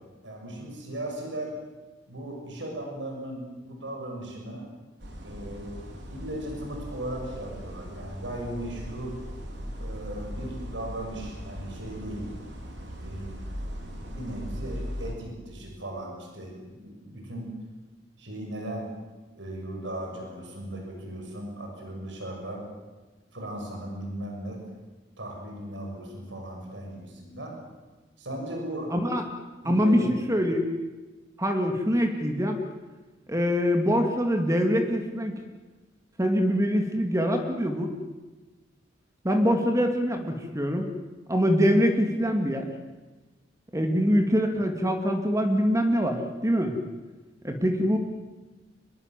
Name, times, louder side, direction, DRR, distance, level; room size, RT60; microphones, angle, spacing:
voice 1, 0.2-1.5 2.1-4.6 5.2-5.8 6.1-9.2 9.8-12.3 13.0-13.3 13.9-17.5 18.2-18.9 19.3-22.6 23.3-24.6 25.2-27.6 28.2-28.9 29.6-30.2, right 1 dB, 85° right, 1 dB, 6.6 m, -37 dB
sound 1, 5.0-15.1, equal, 70° right, 4.6 m, -39 dB
voice 2, 28.9-29.2 29.7-30.7 31.4-32.6 33.3-35.3 36.2-37.9 39.2-40.9 41.3-42.7 43.7-46.7 47.4-48.0, equal, 15° right, 4 dB, 2.3 m, -24 dB
25.5 x 21.5 x 7.6 m, 1.2 s
head